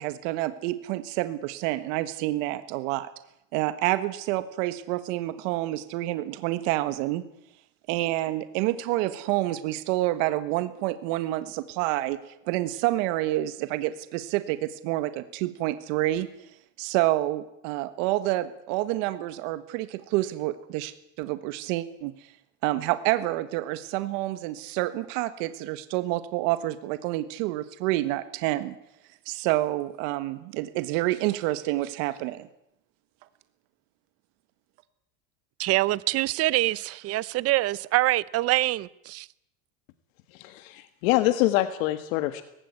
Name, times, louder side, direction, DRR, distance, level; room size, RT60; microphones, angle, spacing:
voice 1, 0.0-3.1 3.5-7.2 7.9-12.2 12.4-16.3 16.8-22.1 22.6-28.7 29.2-32.5, right 16 dB, 65° right, 12 dB, 1.6 m, -28 dB
voice 2, 35.6-39.3, right 17 dB, 35° right, 21 dB, 0.7 m, -25 dB
voice 3, 40.3-42.4, left 16 dB, 70° left, 11 dB, 1.6 m, -25 dB
19.0 x 16.0 x 9.7 m, 0.81 s
supercardioid pair, 140°, 41 cm